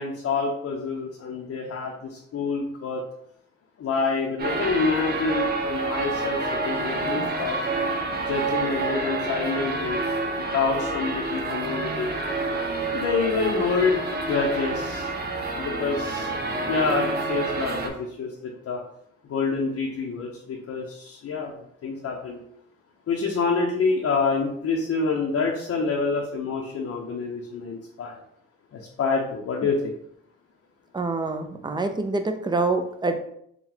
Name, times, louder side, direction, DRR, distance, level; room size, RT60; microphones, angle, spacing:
voice 1, 0.0-3.0 3.8-7.6 8.3-10.0 10.5-12.1 12.9-15.1 15.6-16.3 16.7-18.8 19.3-22.4 23.1-28.2 28.7-29.9, left 4 dB, 55° left, -2 dB, 0.7 m, -27 dB
sound 1, 4.4-17.9, right 3 dB, 35° right, 0.8 m, -28 dB
voice 2, 30.9-33.2, right 3 dB, 15° right, 6 dB, 0.5 m, -26 dB
3.9 x 2.3 x 4.4 m, 0.71 s
cardioid pair, 90°, 30 cm